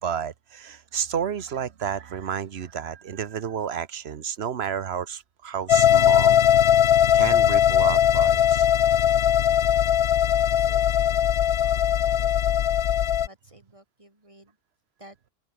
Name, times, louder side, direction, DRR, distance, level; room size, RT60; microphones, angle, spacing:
voice 1, 0.0-6.4 7.1-8.7, right 8 dB, 90° right, 1.2 m, -31 dB
sound 1, 5.7-13.3, left 10 dB, 75° left, 1.0 m, -20 dB
voice 2, 10.1-12.7 13.2-14.6 15.0-15.2, right 1 dB, 30° right, 4.7 m, -52 dB
open air
omnidirectional pair, 1.0 m